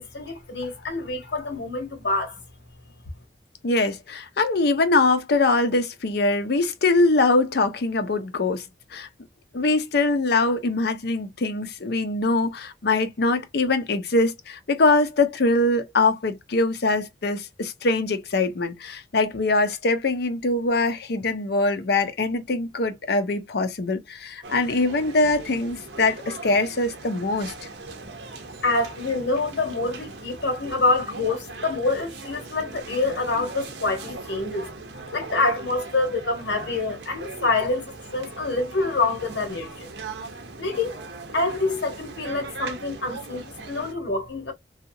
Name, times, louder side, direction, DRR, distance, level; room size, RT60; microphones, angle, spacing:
voice 1, 0.0-2.4 28.6-39.9 40.6-41.0 41.3-44.5, left 3 dB, 85° left, 1.1 m, -26 dB
voice 2, 3.6-8.7 8.9-9.1 9.5-27.5, left 2 dB, 65° left, 0.6 m, -23 dB
sound 1, 24.4-43.9, right 3 dB, 75° right, 0.7 m, -40 dB
2.8 x 2.3 x 2.6 m
head